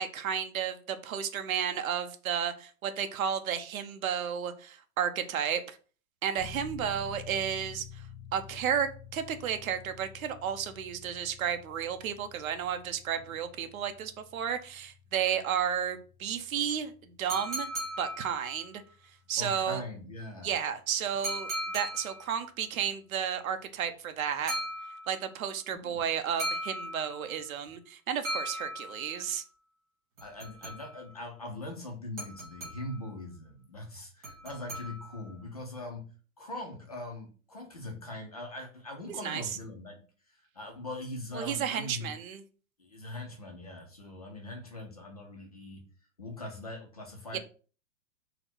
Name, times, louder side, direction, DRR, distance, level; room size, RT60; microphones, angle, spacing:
voice 1, 0.0-5.8 6.2-8.0 8.3-17.7 18.0-18.8 19.3-19.8 20.4-24.5 25.1-29.4 39.1-39.4 41.3-42.4 47.3-47.4, right 8 dB, 70° right, 9 dB, 0.7 m, -32 dB
sound 1, 6.4-20.8, left 6 dB, 50° right, 1.7 m, -50 dB
sound 2, 17.3-18.8 21.2-22.4 24.5-25.4 26.4-27.4 28.2-29.3 30.2-31.1 32.2-33.1 34.2-35.3, right 1 dB, 15° right, 1.2 m, -38 dB
voice 2, 19.4-20.5 25.8-26.0 30.2-36.1 36.4-40.0 40.3-42.1 42.8-45.9 46.2-47.4, left 2 dB, 30° left, 1 dB, 0.4 m, -41 dB
4.1 x 2.1 x 4.2 m, 0.38 s
hypercardioid pair, 175°, 43 cm